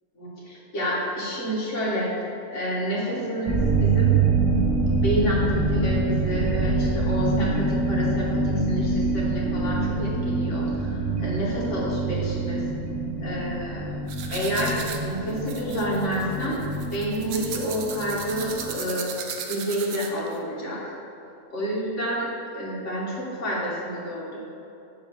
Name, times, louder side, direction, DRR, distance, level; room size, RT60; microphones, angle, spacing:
voice 1, 0.1-2.1 2.5-4.1 5.0-12.6 13.2-13.8 14.3-14.8 15.0-16.6 16.9-19.2 19.5-20.8 21.5-22.3 22.5-24.4, right 1 dB, 50° left, -5 dB, 1.7 m, -29 dB
sound 1, 3.5-18.7, right 3 dB, 25° right, 0.3 m, -25 dB
sound 2, 14.1-20.4, right 6 dB, 70° right, 0.9 m, -36 dB
7.2 x 3.1 x 6.0 m, 2.7 s
omnidirectional pair, 1.6 m